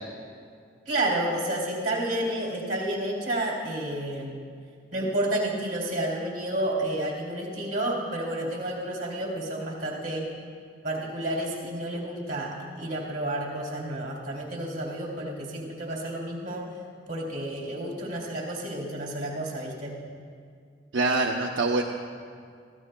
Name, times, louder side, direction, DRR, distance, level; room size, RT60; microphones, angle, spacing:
voice 1, 0.9-4.4 4.9-10.3 10.8-16.7 17.1-20.0, right 1 dB, 45° right, -2 dB, 2.8 m, -30 dB
voice 2, 20.9-21.8, right 3 dB, 70° right, 0 dB, 0.7 m, -24 dB
23.0 x 15.5 x 2.2 m, 2.2 s
head